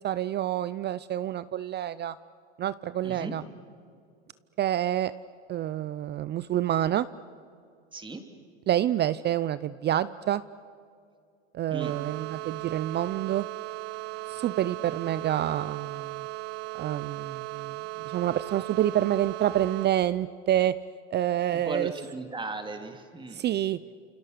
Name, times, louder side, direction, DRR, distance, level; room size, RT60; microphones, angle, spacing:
voice 1, 0.0-2.1 2.6-3.4 4.6-5.1 5.5-7.1 8.7-10.4 11.5-13.5 14.3-16.3 16.8-17.8 18.0-20.7 21.1-21.9 23.3-23.8, right 12 dB, 30° right, 16 dB, 0.6 m, -27 dB
voice 2, 7.9-8.2 11.7-11.9 21.7-23.4, right 3 dB, 15° right, 5 dB, 3.2 m, -36 dB
sound 1, 11.8-19.9, right 21 dB, 60° right, 1.2 m, -37 dB
28.5 x 28.5 x 6.8 m, 2.3 s
hypercardioid pair, 110°, 35 cm